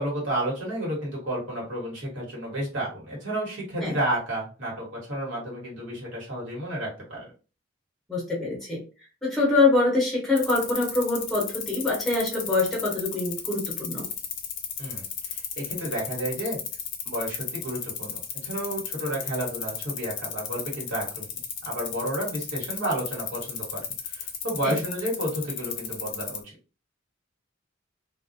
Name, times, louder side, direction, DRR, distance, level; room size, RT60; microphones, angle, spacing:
voice 1, 0.0-7.3 14.8-16.6 17.0-21.3 21.6-26.5, right 1 dB, 70° right, -4 dB, 1.3 m, -31 dB
voice 2, 8.1-8.8 9.2-14.1 24.6-24.8, left 3 dB, ahead, -4 dB, 0.9 m, -24 dB
sound 1, 10.4-26.4, left 8 dB, 60° left, 0.5 m, -33 dB
2.3 x 2.1 x 2.6 m, 0.34 s
head